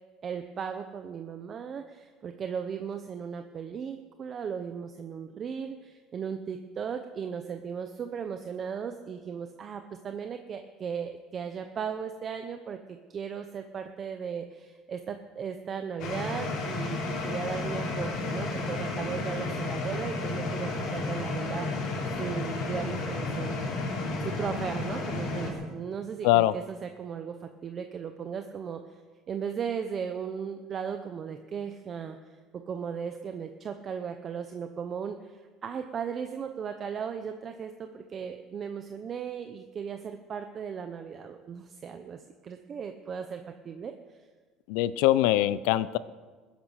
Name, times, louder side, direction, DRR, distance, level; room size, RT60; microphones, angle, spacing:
voice 1, 0.2-23.7 24.2-29.0 29.3-43.9, right 7 dB, 25° right, 7 dB, 0.8 m, -37 dB
sound 1, 16.0-25.5, left 3 dB, 50° left, 3.8 m, -32 dB
voice 2, 44.7-46.0, left 15 dB, 80° left, 17 dB, 0.7 m, -23 dB
21.0 x 10.5 x 6.4 m, 1.4 s
cardioid pair, 170°, 0 cm